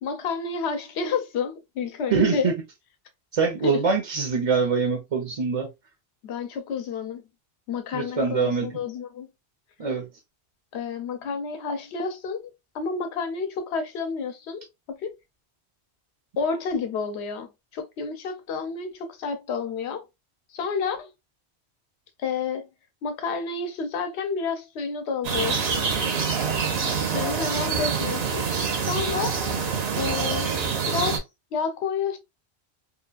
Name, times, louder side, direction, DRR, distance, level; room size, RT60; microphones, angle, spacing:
voice 1, 0.0-2.5 3.6-3.8 6.2-7.2 7.7-9.3 10.7-12.4 12.7-14.7 15.0-15.1 16.4-20.0 20.5-21.1 22.2-22.7 23.0-25.8 27.1-28.5 28.8-29.4 30.0-30.6 30.9-31.2 31.5-32.2, left 5 dB, 75° left, 0.9 m, -30 dB
voice 2, 2.1-2.5 3.3-5.7 7.9-8.7 9.8-10.1, right 5 dB, 45° right, 0.5 m, -24 dB
sound 1, 25.2-31.2, right 5 dB, 70° right, 0.9 m, -26 dB
2.7 x 2.4 x 2.3 m
omnidirectional pair, 1.1 m